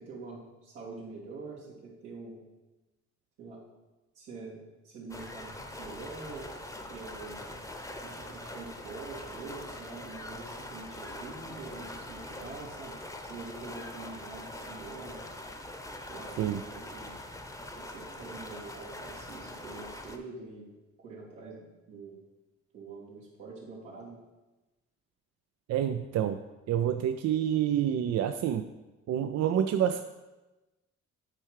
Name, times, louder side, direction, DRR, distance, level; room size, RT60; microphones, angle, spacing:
voice 1, 0.0-2.4 3.4-3.6 4.1-6.5 6.9-7.5 8.0-13.0 13.3-15.2 16.1-17.2 17.8-20.7 21.0-22.2 22.7-24.2, right 3 dB, 90° right, -6 dB, 2.8 m, -45 dB
sound 1, 5.1-20.2, left 1 dB, 10° left, 0.8 m, -43 dB
voice 2, 25.7-26.4 26.7-28.7 29.1-30.0, right 10 dB, 60° right, 8 dB, 0.4 m, -28 dB
9.0 x 4.5 x 4.8 m, 1.1 s
cardioid pair, 90°, 30 cm